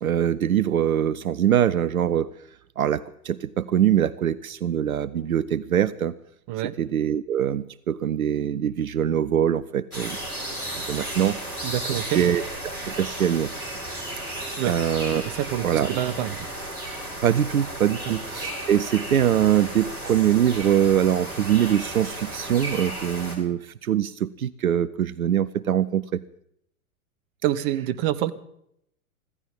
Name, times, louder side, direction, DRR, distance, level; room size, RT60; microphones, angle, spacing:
voice 1, 0.0-2.3 2.8-6.1 6.8-10.2 10.9-12.4 12.9-13.5 14.4-15.2 15.6-15.9 17.2-26.2, right 10 dB, 75° right, 18 dB, 0.6 m, -23 dB
sound 1, 9.9-23.4, right 1 dB, 85° left, 4.7 m, -34 dB
voice 2, 11.6-12.2 14.6-14.7 15.4-16.4 18.1-18.2 27.4-28.3, right 13 dB, 40° right, 15 dB, 1.0 m, -26 dB
25.0 x 15.5 x 3.6 m, 0.73 s
figure-of-eight pair, 95°, 43 cm